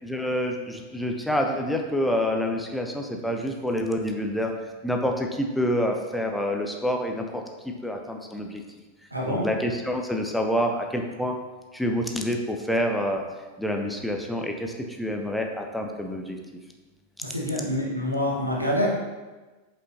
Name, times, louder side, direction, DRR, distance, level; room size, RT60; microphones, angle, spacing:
voice 1, 0.0-4.5 4.8-8.6 9.3-11.4 11.7-13.2 13.6-16.4, equal, ahead, 2 dB, 0.8 m, -27 dB
voice 2, 9.1-9.5 17.2-18.9, equal, 85° right, -2 dB, 1.4 m, -26 dB
8.0 x 5.5 x 2.8 m, 1.2 s
figure-of-eight pair, 90°, 0 cm